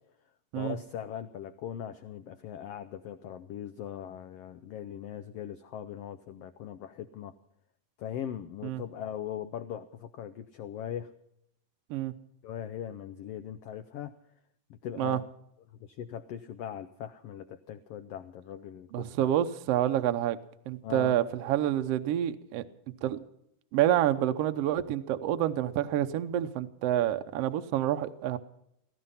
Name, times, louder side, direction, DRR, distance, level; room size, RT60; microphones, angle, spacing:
voice 1, 0.5-7.3 8.0-11.1 12.4-14.1 14.7-15.2 15.8-19.3 20.8-21.2, left 9 dB, 85° left, 10 dB, 1.3 m, -40 dB
voice 2, 18.9-20.4 20.7-22.6 23.0-23.2 23.7-28.4, right 12 dB, 70° right, 8 dB, 1.5 m, -28 dB
16.5 x 15.5 x 5.6 m, 0.76 s
omnidirectional pair, 3.7 m